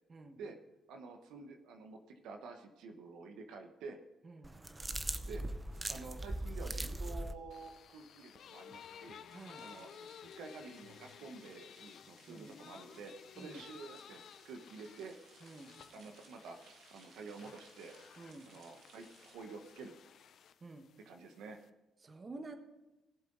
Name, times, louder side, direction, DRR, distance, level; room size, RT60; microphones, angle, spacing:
voice 1, 0.9-4.0 5.3-5.4 5.7-9.2 9.6-9.9 10.4-15.2 15.9-17.9 18.5-19.9 21.0-21.6, right 4 dB, 85° right, 5 dB, 1.0 m, -49 dB
sound 1, 4.4-7.3, right 1 dB, 20° right, 0.8 m, -40 dB
sound 2, 7.5-21.7, left 8 dB, 65° left, 0.6 m, -56 dB
voice 2, 9.3-9.7 12.3-12.5 13.4-13.6 15.4-15.7 18.2-18.5 20.6-20.9 22.0-22.6, right 3 dB, 35° right, 7 dB, 1.3 m, -50 dB
sound 3, 9.3-19.4, right 5 dB, 70° right, 1.6 m, -65 dB
18.5 x 7.7 x 3.8 m, 1.1 s
cardioid pair, 90°, 0 cm